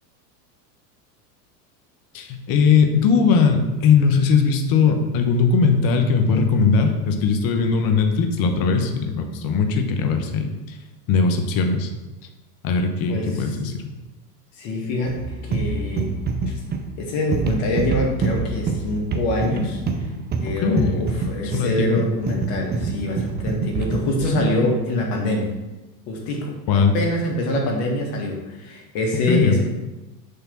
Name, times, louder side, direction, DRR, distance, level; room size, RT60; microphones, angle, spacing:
voice 1, 2.1-10.8 11.1-11.9 12.6-13.9 20.6-21.0 21.5-22.0 26.7-26.9 29.3-29.6, left 5 dB, 45° left, 5 dB, 1.1 m, -19 dB
voice 2, 13.1-13.5 14.6-16.1 16.5-16.6 17.0-19.8 20.4-25.5 26.1-29.6, left 1 dB, 60° left, 0 dB, 2.1 m, -25 dB
sound 1, 15.1-24.6, right 4 dB, 20° right, 0.6 m, -26 dB
6.6 x 3.5 x 6.0 m, 1.1 s
hypercardioid pair, 110°, 49 cm